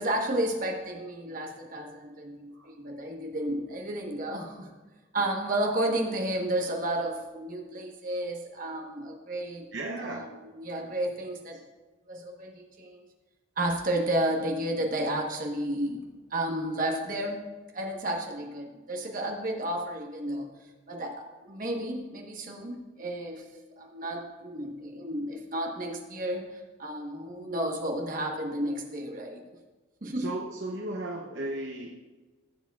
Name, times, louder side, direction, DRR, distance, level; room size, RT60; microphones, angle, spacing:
voice 1, 0.0-4.7 5.1-9.7 10.0-11.6 12.1-13.0 13.6-16.0 16.3-17.5 17.7-20.5 20.9-23.5 23.8-29.4 30.0-30.3, right 1 dB, 40° right, 1 dB, 1.2 m, -32 dB
voice 2, 9.7-10.3 30.2-31.9, right 2 dB, 60° right, -1 dB, 0.8 m, -35 dB
14.5 x 7.1 x 2.4 m, 1.3 s
head